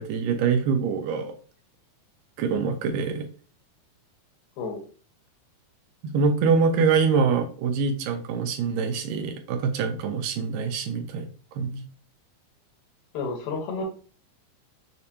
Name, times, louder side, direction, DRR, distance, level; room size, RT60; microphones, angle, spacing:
voice 1, 0.0-1.3 2.4-3.3 6.0-11.8, right 5 dB, 80° right, 6 dB, 2.1 m, -25 dB
voice 2, 13.1-13.8, left 4 dB, 85° left, 3 dB, 2.8 m, -30 dB
6.6 x 2.5 x 2.7 m, 0.40 s
omnidirectional pair, 4.2 m